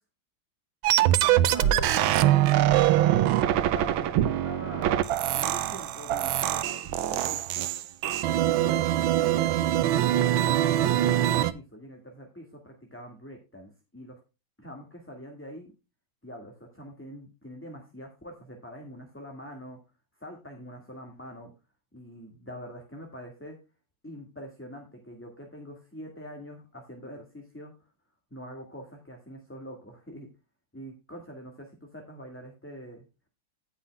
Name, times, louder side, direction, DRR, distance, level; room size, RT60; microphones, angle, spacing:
sound 1, 0.8-11.5, right 13 dB, 75° right, 1.4 m, -23 dB
voice 1, 1.0-7.7 8.3-9.9 10.7-14.2 14.6-15.7 16.2-19.8 20.2-21.5 21.9-23.6 24.0-27.7 28.3-30.3 30.7-33.0, equal, 5° left, 1 dB, 1.5 m, -44 dB
17.0 x 5.6 x 2.3 m, 0.29 s
omnidirectional pair, 2.4 m